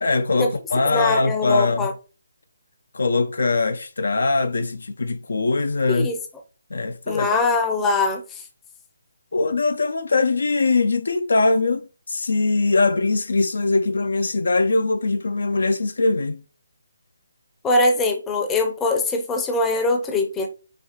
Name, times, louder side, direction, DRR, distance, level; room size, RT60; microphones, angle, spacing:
voice 1, 0.0-1.9 2.9-6.1 6.7-7.4 9.3-16.4, left 3 dB, 55° left, 0.4 m, -21 dB
voice 2, 0.8-1.9 5.9-6.2 7.1-8.2 17.6-20.5, left 2 dB, 10° left, 0.6 m, -22 dB
5.0 x 3.4 x 2.9 m
figure-of-eight pair, 145°, 0 cm